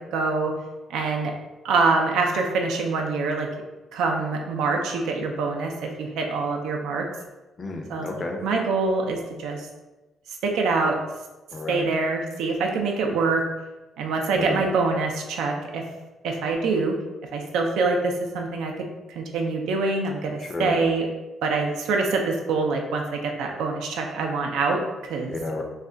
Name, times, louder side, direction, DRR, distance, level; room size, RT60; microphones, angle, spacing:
voice 1, 0.1-0.5 0.9-1.3 1.6-3.5 3.9-7.1 7.9-8.1 8.4-9.7 10.4-11.0 11.7-13.4 14.0-15.8 16.2-16.9 17.3-18.7 19.2-21.1 21.4-25.3, right 3 dB, 90° right, 2 dB, 0.4 m, -25 dB
voice 2, 7.6-8.4 11.5-11.9 14.3-14.6 20.4-20.8 25.3-25.6, left 2 dB, 35° left, 2 dB, 0.5 m, -31 dB
2.4 x 2.2 x 3.7 m, 1.1 s
cardioid pair, 90°, 0 cm